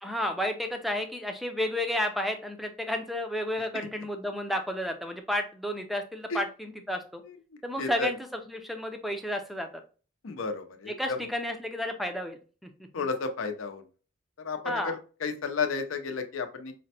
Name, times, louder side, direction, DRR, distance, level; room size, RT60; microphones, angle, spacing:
voice 1, 0.0-7.2 7.6-8.2 8.5-9.7 10.9-12.4 14.7-14.9, left 1 dB, ahead, 5 dB, 0.4 m, -31 dB
voice 2, 7.8-8.1 10.2-11.2 12.9-13.8 14.4-16.7, left 4 dB, 85° left, 7 dB, 0.6 m, -32 dB
5.0 x 2.1 x 2.7 m, 0.36 s
head